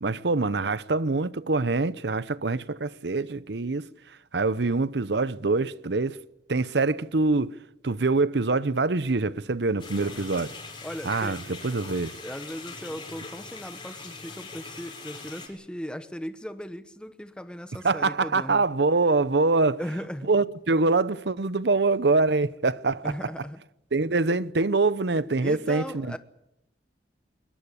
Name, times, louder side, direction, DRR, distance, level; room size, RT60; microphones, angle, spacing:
voice 1, 0.0-3.9 4.3-6.2 6.5-7.5 7.8-10.5 11.0-12.1 17.8-19.8 20.3-23.1 23.9-26.1, right 3 dB, 70° right, 0.8 m, -24 dB
sound 1, 9.8-15.5, left 4 dB, 25° left, 6.0 m, -42 dB
voice 2, 10.0-10.3 10.8-11.4 12.2-18.6 19.8-20.3 23.0-23.6 25.4-26.2, equal, 5° left, 1.0 m, -37 dB
22.0 x 21.5 x 8.4 m
head